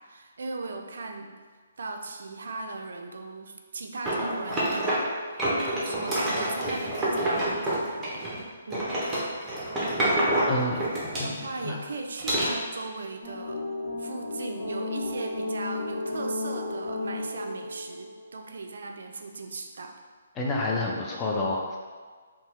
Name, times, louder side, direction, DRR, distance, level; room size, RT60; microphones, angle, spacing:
voice 1, 0.0-1.3 1.8-8.3 8.7-9.0 9.7-9.9 10.7-13.6 14.0-19.9, right 3 dB, 70° right, 4 dB, 0.3 m, -38 dB
sound 1, 4.1-5.1 5.4-8.4 8.7-11.6 12.2-12.5, right 1 dB, 10° right, 0.8 m, -27 dB
voice 2, 10.4-10.8 11.2-11.4 11.6-11.8 20.4-21.8, left 2 dB, 20° left, -3 dB, 0.5 m, -28 dB
sound 2, 13.2-18.3, left 2 dB, 80° left, 1.0 m, -34 dB
2.7 x 2.2 x 3.1 m, 1.5 s
figure-of-eight pair, 140°, 0 cm